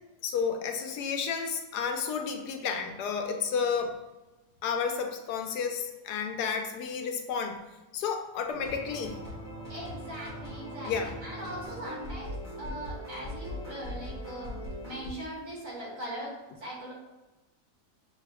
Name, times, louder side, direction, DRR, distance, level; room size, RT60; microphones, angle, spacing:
voice 1, 0.2-3.9 4.6-7.6 7.9-9.2 10.8-11.1, left 6 dB, 90° left, 5 dB, 1.2 m, -31 dB
sound 1, 8.5-15.1, equal, 10° right, 0.9 m, -40 dB
voice 2, 9.7-14.5 14.8-16.3 16.6-16.9, right 1 dB, 55° right, -4 dB, 1.9 m, -40 dB
6.4 x 2.3 x 3.4 m, 1.1 s
omnidirectional pair, 1.7 m